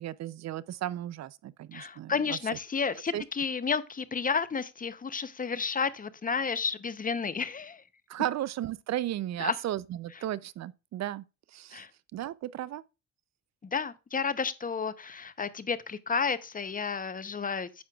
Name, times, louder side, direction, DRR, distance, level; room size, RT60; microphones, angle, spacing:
voice 1, 0.0-2.4 3.1-3.2 8.1-11.2 11.5-11.8 12.1-12.8, right 13 dB, 60° right, 0.5 m, -34 dB
voice 2, 1.7-7.8 9.4-9.6 11.7-11.9 13.6-17.8, left 5 dB, 30° left, 0.7 m, -31 dB
9.4 x 7.5 x 2.3 m
cardioid pair, 90°, 30 cm